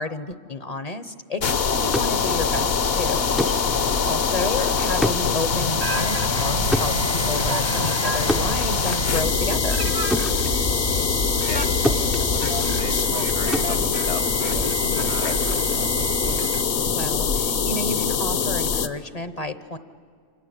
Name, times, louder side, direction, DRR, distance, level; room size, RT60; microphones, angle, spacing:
voice 1, 0.0-3.3 3.8-9.8 16.8-19.8, left 2 dB, 40° left, 12 dB, 0.8 m, -31 dB
sound 1, 1.4-18.9, left 6 dB, 65° left, 1.2 m, -23 dB
sound 2, 1.7-11.6 11.8-14.8, equal, ahead, 0.4 m, -31 dB
sound 3, 5.8-16.6, right 4 dB, 40° right, 0.9 m, -31 dB
voice 2, 11.3-12.0 12.3-15.8, left 4 dB, 85° left, 6 dB, 2.4 m, -36 dB
29.0 x 24.5 x 8.0 m, 2.3 s
omnidirectional pair, 1.1 m